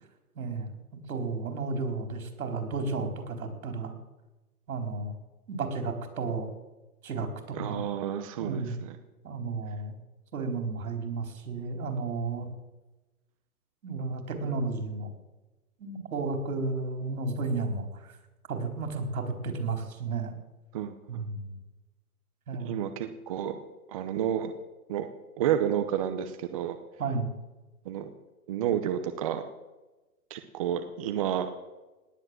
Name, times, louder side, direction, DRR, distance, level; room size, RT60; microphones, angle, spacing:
voice 1, 0.4-0.7 1.1-3.9 4.7-5.2 5.5-6.5 7.0-7.9 8.4-8.8 9.2-9.9 10.3-12.5 13.8-15.1 15.8-18.2 18.5-20.3 21.1-21.6 22.5-22.7 27.0-27.3, right 3 dB, 70° right, 6 dB, 4.4 m, -33 dB
voice 2, 7.5-9.0 20.7-21.2 22.6-23.6 23.9-24.5 24.9-25.1 25.4-26.8 27.8-28.1 28.5-29.4 30.3-31.5, right 10 dB, 25° right, 8 dB, 0.8 m, -30 dB
18.5 x 10.0 x 7.6 m, 1.1 s
hypercardioid pair, 165°, 45 cm